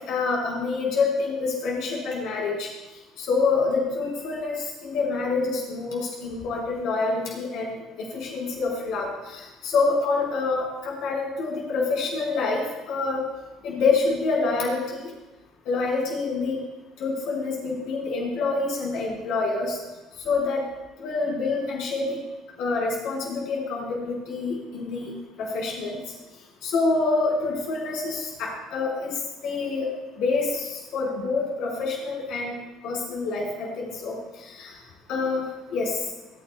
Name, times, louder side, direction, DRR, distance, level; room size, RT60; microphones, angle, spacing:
voice 1, 0.1-2.7 3.2-13.2 13.6-15.1 15.6-16.6 17.0-19.8 20.2-20.6 21.0-22.2 22.6-26.0 26.6-29.9 30.2-32.5 32.8-34.1 34.6-34.7 35.1-36.0, left 3 dB, 65° left, -2 dB, 5.1 m, -27 dB
26.5 x 9.6 x 2.4 m, 1.1 s
hypercardioid pair, 60°, 0 cm